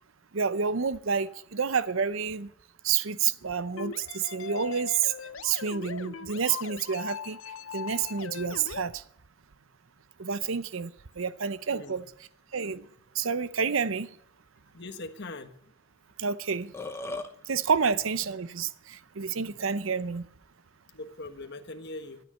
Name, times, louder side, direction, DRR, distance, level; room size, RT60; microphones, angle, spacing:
voice 1, 0.3-2.5 2.8-5.1 5.4-7.4 7.7-9.0 10.2-10.9 11.2-12.1 12.5-12.9 13.1-14.1 16.2-16.7 17.5-20.3, right 6 dB, 70° right, 0.7 m, -29 dB
sound 1, 3.8-8.8, left 6 dB, 70° left, 0.7 m, -40 dB
voice 2, 14.7-15.5 20.9-22.2, left 2 dB, 55° left, 1.4 m, -41 dB
Burping eructation, 16.1-16.2 16.5-17.3, left 2 dB, 15° left, 1.1 m, -36 dB
14.0 x 9.2 x 9.3 m
head